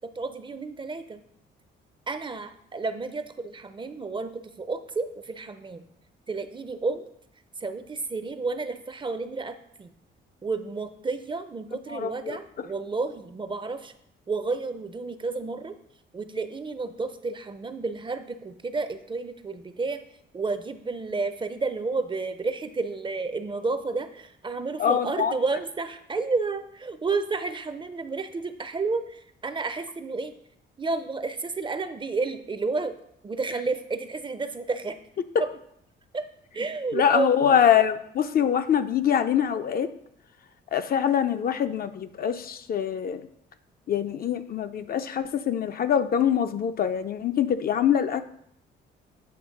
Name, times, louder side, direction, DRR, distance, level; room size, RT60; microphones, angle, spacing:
voice 1, 0.2-1.2 2.1-5.8 6.3-7.0 7.6-9.9 10.4-13.9 14.3-15.7 16.1-20.0 20.3-30.3 30.8-33.0 33.2-35.0 35.4-35.5 36.1-36.2 36.5-37.6, right 3 dB, 25° right, 10 dB, 0.5 m, -31 dB
voice 2, 11.9-12.4 24.8-25.3 36.9-39.9 40.7-43.2 43.9-48.2, left 8 dB, 50° left, 9 dB, 0.5 m, -24 dB
7.9 x 3.1 x 5.2 m, 0.72 s
cardioid pair, 90°, 20 cm